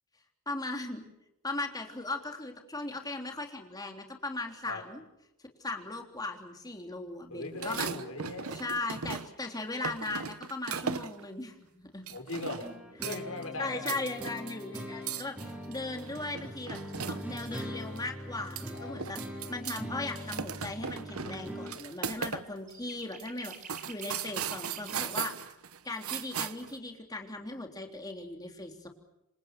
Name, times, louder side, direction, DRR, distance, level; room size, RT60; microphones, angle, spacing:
voice 1, 0.4-1.0 1.4-5.0 5.6-7.9 8.5-12.0 13.6-16.8 17.1-19.2 19.5-25.5 25.8-28.9, left 2 dB, 15° left, 3 dB, 3.4 m, -38 dB
voice 2, 7.3-8.6 12.1-12.7 13.0-13.9 18.7-18.9, left 2 dB, 70° left, 4 dB, 5.8 m, -39 dB
sound 1, 7.5-9.5 9.8-11.3 12.1-12.7 13.0-13.4 13.7-17.6 18.0-18.1 18.4-19.8 20.1-22.4 22.7-22.8 23.2-26.8, right 6 dB, 70° right, 1.1 m, -38 dB
sound 2, 12.6-21.7, equal, 5° right, 4.8 m, -42 dB
sound 3, 22.2-22.3 22.7-25.2, right 7 dB, 35° right, 4.2 m, -48 dB
28.0 x 26.0 x 6.1 m, 0.87 s
head